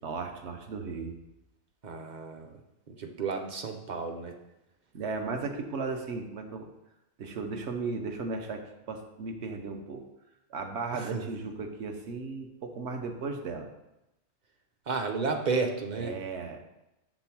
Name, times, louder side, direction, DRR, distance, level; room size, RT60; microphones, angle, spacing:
voice 1, 0.0-1.2 4.9-6.7 7.2-10.0 10.5-13.7 15.9-16.6, right 4 dB, 70° right, 4 dB, 1.1 m, -36 dB
voice 2, 1.8-2.5 2.9-4.4 10.9-11.2 14.9-16.1, right 4 dB, 45° right, 4 dB, 0.7 m, -32 dB
6.2 x 3.5 x 5.9 m, 0.91 s
omnidirectional pair, 1.2 m